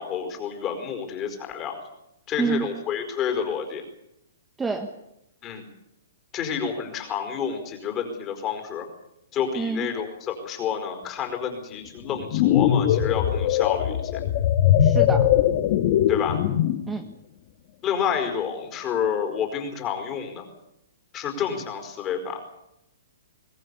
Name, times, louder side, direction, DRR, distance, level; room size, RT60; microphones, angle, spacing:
voice 1, 0.0-1.7 2.3-3.8 5.4-5.7 6.3-8.9 9.3-14.2 16.1-16.4 17.8-20.5 21.1-22.4, left 7 dB, 20° left, 5 dB, 4.8 m, -29 dB
voice 2, 4.6-4.9 9.5-9.9 14.8-15.3 16.9-17.1, right 4 dB, 10° right, 4 dB, 1.5 m, -27 dB
sound 1, 12.1-16.9, left 10 dB, 45° left, 1.7 m, -21 dB
23.0 x 17.5 x 8.4 m, 0.83 s
hypercardioid pair, 155°, 0 cm